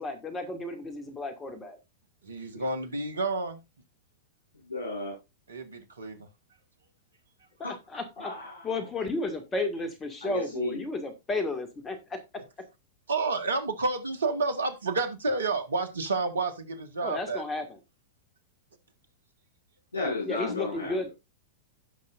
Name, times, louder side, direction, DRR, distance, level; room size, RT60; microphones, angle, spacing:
voice 1, 0.0-1.8 7.9-8.3 8.6-12.0 17.0-17.6 20.3-21.1, left 2 dB, 20° left, 8 dB, 2.1 m, -32 dB
voice 2, 2.2-3.6 5.5-6.2 13.1-17.4, right 3 dB, 70° right, 8 dB, 1.4 m, -30 dB
voice 3, 4.6-5.1 7.6-7.7 8.2-8.7 10.2-10.8 19.9-21.1, left 2 dB, 75° left, -3 dB, 6.3 m, -33 dB
16.5 x 5.6 x 2.5 m, 0.25 s
figure-of-eight pair, 95°, 0 cm